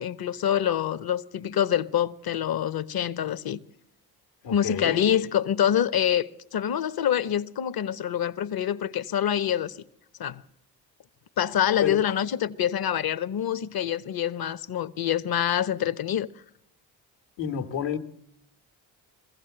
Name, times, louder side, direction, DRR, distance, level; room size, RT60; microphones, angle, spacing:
voice 1, 0.0-3.6 4.5-9.8 10.2-10.4 11.4-16.3, left 10 dB, 55° left, 0.9 m, -26 dB
voice 2, 4.4-5.0 11.8-12.0 17.4-18.0, left 8 dB, 80° left, 1.7 m, -29 dB
23.0 x 15.5 x 7.9 m
supercardioid pair, 60°, 45 cm